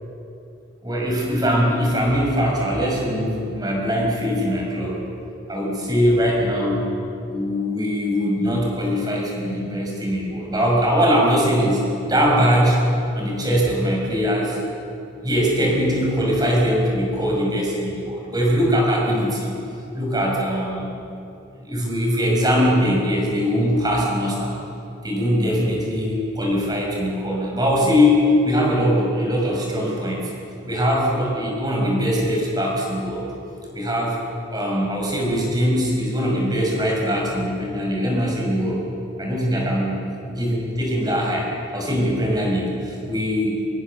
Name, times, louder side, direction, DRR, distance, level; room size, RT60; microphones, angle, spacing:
voice 1, 0.8-5.0 5.5-6.9 7.3-12.8 13.1-14.6 15.2-19.5 19.9-20.9 21.6-24.6 25.0-30.3 30.6-33.3 33.7-34.2 34.5-38.8 39.2-43.7, equal, 20° right, -1 dB, 5.8 m, -21 dB
23.5 x 23.5 x 7.1 m, 2.7 s
head